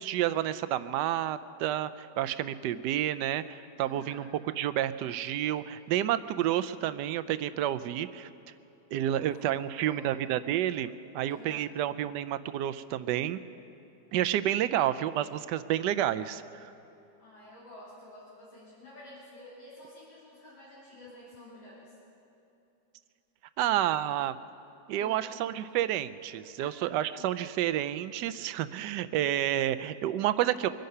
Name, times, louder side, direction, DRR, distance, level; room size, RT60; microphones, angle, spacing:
voice 1, 0.0-4.3 4.6-8.3 8.9-13.4 14.1-16.7 23.6-24.4 24.9-30.7, right 12 dB, 75° right, 14 dB, 1.1 m, -30 dB
voice 2, 3.8-4.3 9.0-10.1 11.2-11.7 17.2-22.0 24.9-25.3 26.6-27.3, left 1 dB, 85° left, -9 dB, 4.1 m, -51 dB
24.0 x 10.5 x 5.5 m, 2.9 s
omnidirectional pair, 2.0 m